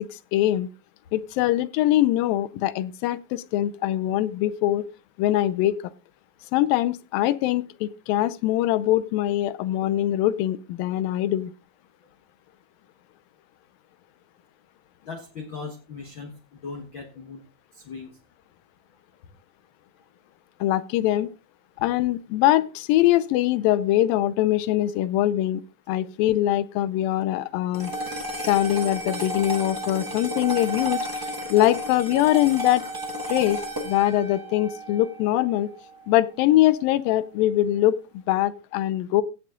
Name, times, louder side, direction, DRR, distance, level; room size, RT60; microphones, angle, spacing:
voice 1, 0.3-0.7 1.1-4.9 5.2-5.8 6.5-11.5 20.6-21.3 21.8-25.6 25.9-27.9 28.5-31.1 31.5-32.8 33.3-35.7 36.1-39.2, left 14 dB, 85° left, 2.4 m, -22 dB
voice 2, 15.0-16.3 16.6-17.4 17.7-18.2, left 4 dB, 50° left, 1.5 m, -38 dB
sound 1, 27.7-36.3, right 1 dB, 15° right, 0.6 m, -33 dB
16.0 x 6.2 x 3.7 m
omnidirectional pair, 4.0 m